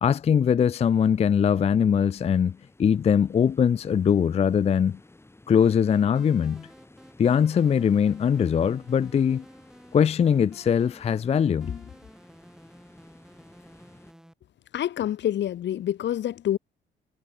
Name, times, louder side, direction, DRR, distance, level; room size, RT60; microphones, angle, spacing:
voice 1, 0.0-5.0 5.5-6.7 7.2-9.4 9.9-11.8, left 7 dB, 30° left, 0.4 m, -22 dB
sound 1, 0.8-14.1, left 2 dB, 10° left, 4.0 m, -55 dB
sound 2, 5.6-14.3, equal, 5° right, 6.5 m, -53 dB
voice 2, 14.7-16.6, left 11 dB, 65° left, 1.0 m, -27 dB
cardioid pair, 90°, 20 cm